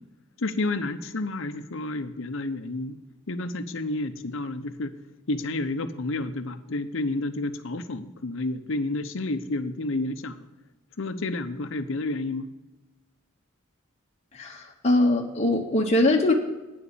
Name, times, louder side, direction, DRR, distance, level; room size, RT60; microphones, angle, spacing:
voice 1, 0.4-3.0 3.3-4.9 5.3-10.4 11.0-12.5, left 2 dB, 65° left, 10 dB, 0.9 m, -30 dB
voice 2, 14.3-16.3, left 2 dB, 30° left, -2 dB, 1.1 m, -22 dB
9.6 x 7.0 x 8.5 m, 1.0 s
head